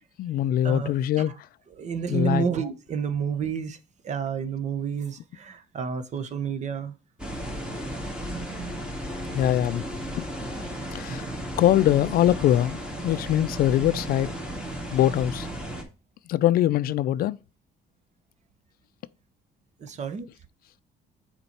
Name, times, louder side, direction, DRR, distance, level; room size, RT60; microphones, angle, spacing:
voice 1, 0.2-1.3 2.1-2.4 9.3-9.8 10.2-10.3 10.9-11.2 11.6-14.3 14.9-15.5 16.3-17.4, left 12 dB, 60° left, 0.4 m, -22 dB
voice 2, 1.8-3.8 4.0-6.9 19.8-20.3, right 6 dB, 45° right, 1.0 m, -30 dB
sound 1, 7.2-15.8, equal, 5° right, 1.9 m, -34 dB
6.9 x 4.4 x 4.4 m
cardioid pair, 110°, 17 cm